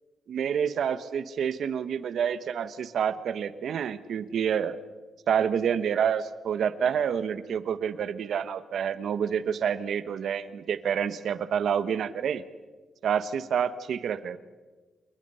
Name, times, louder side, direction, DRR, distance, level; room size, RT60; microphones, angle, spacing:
voice 1, 0.3-4.8 5.3-12.4 13.0-14.4, right 8 dB, 70° right, 14 dB, 1.1 m, -28 dB
28.5 x 21.5 x 5.6 m, 1.3 s
cardioid pair, 120°, 0 cm